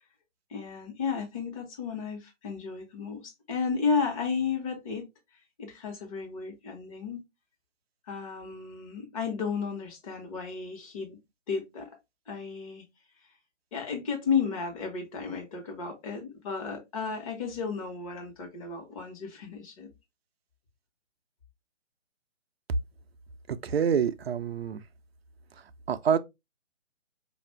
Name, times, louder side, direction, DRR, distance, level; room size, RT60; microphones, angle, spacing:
voice 1, 0.5-5.1 5.6-7.2 8.1-11.2 11.5-11.9 12.3-12.8 13.7-19.9, left 5 dB, 30° left, 1.2 m, -33 dB
voice 2, 23.5-24.8 25.6-26.2, right 7 dB, 55° right, 0.5 m, -27 dB
4.9 x 2.5 x 3.2 m
figure-of-eight pair, 145°, 37 cm